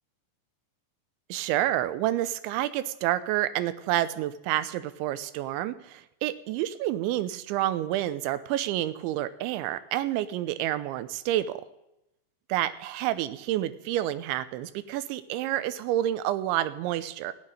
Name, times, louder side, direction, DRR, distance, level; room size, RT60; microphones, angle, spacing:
voice 1, 1.3-11.6 12.5-17.3, right 13 dB, 90° right, 13 dB, 3.2 m, -29 dB
16.0 x 8.5 x 10.0 m, 0.89 s
omnidirectional pair, 5.2 m